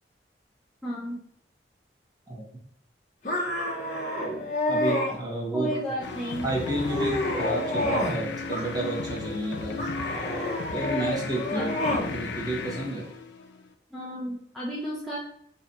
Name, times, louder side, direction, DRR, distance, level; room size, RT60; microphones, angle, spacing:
voice 1, 0.8-1.2 5.5-6.5 11.5-11.6 13.9-15.2, equal, ahead, -8 dB, 0.4 m, -33 dB
sound 1, 3.2-5.1 5.7-6.2 6.6-8.2 8.5-9.2 9.8-12.1, left 1 dB, 45° left, 0.8 m, -29 dB
voice 2, 4.2-5.7 6.4-9.9 10.7-13.1, right 1 dB, 20° right, -3 dB, 0.8 m, -31 dB
sound 2, 6.0-13.7, left 4 dB, 70° left, 0.4 m, -35 dB
2.8 x 2.3 x 3.9 m, 0.69 s
head